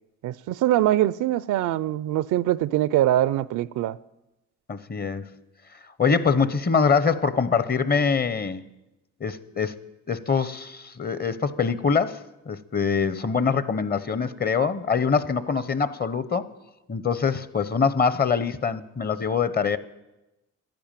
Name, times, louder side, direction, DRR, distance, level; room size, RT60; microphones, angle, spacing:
voice 1, 0.2-4.0, right 13 dB, 80° right, 0.5 m, -23 dB
voice 2, 4.7-5.3 6.0-8.6 9.2-9.8 10.1-16.5 16.9-19.8, left 5 dB, 30° left, 0.8 m, -24 dB
11.5 x 10.5 x 9.0 m
cardioid pair, 90°, 30 cm